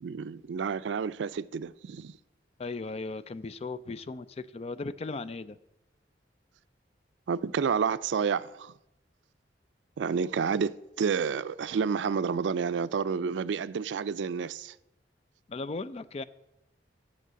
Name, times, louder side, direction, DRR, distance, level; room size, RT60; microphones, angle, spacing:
voice 1, 0.0-2.2 7.3-8.7 10.0-14.8, right 6 dB, 85° right, 0.4 m, -30 dB
voice 2, 2.6-5.6 15.5-16.2, left 3 dB, 35° left, 0.4 m, -37 dB
8.2 x 6.6 x 7.3 m
head